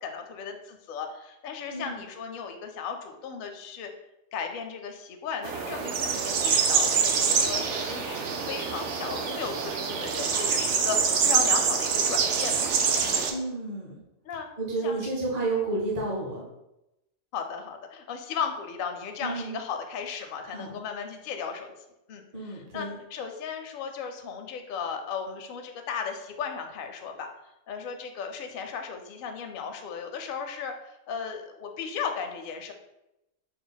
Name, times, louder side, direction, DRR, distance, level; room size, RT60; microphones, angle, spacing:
voice 1, 0.0-3.9 4.3-12.7 13.0-13.2 14.3-14.5 14.8-15.0 17.3-21.7 22.1-22.2 22.7-27.3 27.7-32.7, left 6 dB, 60° left, 4 dB, 0.6 m, -36 dB
voice 2, 1.7-2.0 13.3-14.0 14.6-16.4 19.2-19.6 20.4-20.7 22.3-23.0, right 2 dB, 40° right, -3 dB, 0.7 m, -31 dB
sound 1, 5.4-13.3, right 6 dB, 70° right, 0.8 m, -25 dB
4.2 x 2.2 x 3.9 m, 0.89 s
omnidirectional pair, 1.3 m